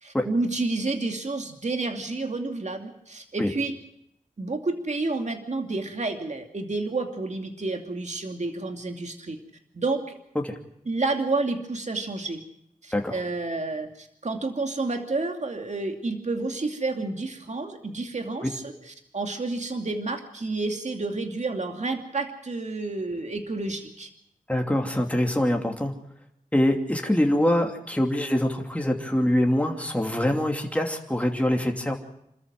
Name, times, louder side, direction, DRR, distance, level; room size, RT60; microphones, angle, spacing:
voice 1, 0.0-3.7 4.4-9.4 9.7-10.1 10.9-12.4 12.8-24.1, right 3 dB, 55° right, 4 dB, 2.6 m, -30 dB
voice 2, 24.5-25.9 26.5-32.0, left 1 dB, 10° left, 2 dB, 2.8 m, -24 dB
27.5 x 13.5 x 7.6 m, 0.78 s
wide cardioid pair, 65°, 14 cm